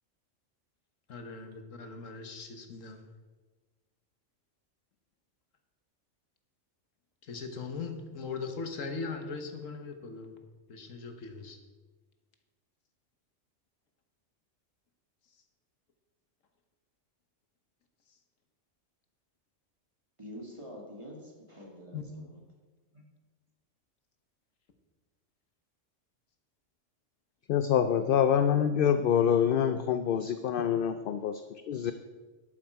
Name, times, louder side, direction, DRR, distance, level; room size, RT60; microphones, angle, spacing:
voice 1, 1.1-3.0 7.2-10.3 10.7-11.6 21.9-22.0, left 4 dB, 90° left, 6 dB, 1.6 m, -39 dB
voice 2, 20.2-22.4 22.9-23.0, equal, 25° right, -1 dB, 2.2 m, -46 dB
voice 3, 27.5-31.9, left 8 dB, 60° left, 10 dB, 0.6 m, -26 dB
11.5 x 8.7 x 4.6 m, 1.3 s
omnidirectional pair, 1.3 m